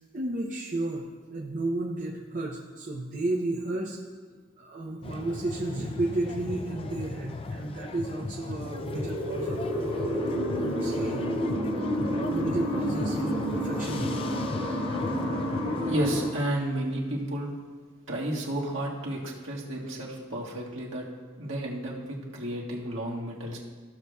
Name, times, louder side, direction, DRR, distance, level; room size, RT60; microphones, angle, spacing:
voice 1, 0.1-4.0 4.3-9.9 10.5-11.3 12.3-14.2, right 2 dB, 40° right, -2 dB, 0.7 m, -33 dB
sound 1, 5.0-16.3, left 3 dB, 25° left, 0.3 m, -37 dB
sound 2, 8.7-16.3, equal, 50° left, 1.7 m, -30 dB
voice 2, 15.8-17.5 18.1-21.0 21.4-23.6, right 1 dB, 70° right, -4 dB, 1.6 m, -32 dB
15.0 x 6.7 x 2.3 m, 1.5 s
head